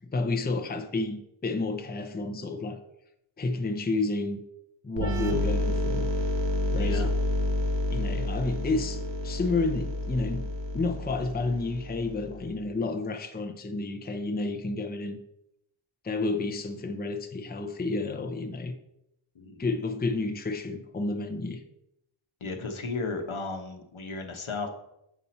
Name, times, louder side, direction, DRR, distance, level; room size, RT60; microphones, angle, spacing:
voice 1, 0.0-2.8 3.4-4.4 4.8-6.1 6.7-7.2 7.9-10.5 10.7-15.2 16.0-18.7 19.6-21.6, left 3 dB, 20° left, 6 dB, 0.6 m, -30 dB
sound 1, 5.0-12.5, left 1 dB, 60° right, 0.8 m, -29 dB
voice 2, 6.7-7.1 19.3-19.6 22.4-24.7, left 3 dB, 70° left, 4 dB, 1.0 m, -35 dB
7.1 x 4.3 x 4.2 m, 0.82 s
wide cardioid pair, 55°, 50 cm